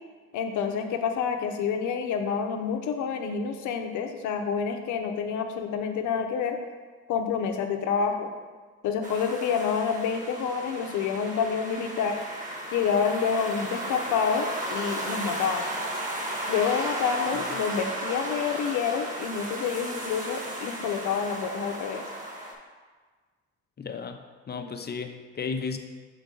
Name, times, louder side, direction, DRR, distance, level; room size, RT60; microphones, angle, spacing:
voice 1, 0.3-6.6 7.1-8.3 8.8-12.2 12.7-15.6 16.5-22.0, left 6 dB, 85° left, 5 dB, 0.7 m, -28 dB
sound 1, 9.0-22.5, right 1 dB, 25° right, 1.5 m, -35 dB
voice 2, 23.8-24.2 24.5-25.8, left 5 dB, 35° left, 6 dB, 0.6 m, -34 dB
6.2 x 4.6 x 3.8 m, 1.4 s
supercardioid pair, 65°, 29 cm